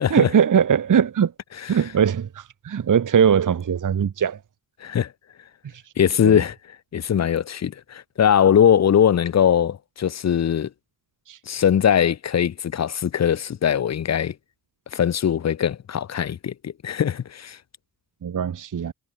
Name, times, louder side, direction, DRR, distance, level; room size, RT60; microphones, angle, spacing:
voice 1, 0.1-1.3 1.7-4.4 6.2-6.4 11.3-11.4 18.2-18.9, right 7 dB, 50° right, 0.8 m, -20 dB
voice 2, 4.8-5.1 6.0-6.6 6.9-10.7 11.5-14.3 14.9-17.6, left 9 dB, 40° left, 0.5 m, -21 dB
cardioid pair, 65°, 40 cm